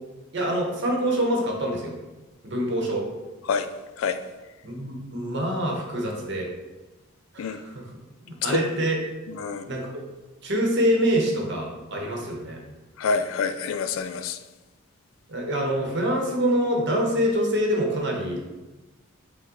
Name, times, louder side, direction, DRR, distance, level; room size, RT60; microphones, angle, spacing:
voice 1, 0.3-2.0 2.4-3.1 4.6-6.5 7.3-7.9 8.2-9.0 9.7-9.9 10.4-12.6 15.3-18.5, equal, 55° right, 0 dB, 0.9 m, -25 dB
voice 2, 9.3-9.6 13.0-14.4, left 5 dB, 70° left, 10 dB, 0.3 m, -27 dB
5.5 x 2.2 x 3.8 m, 1.1 s
head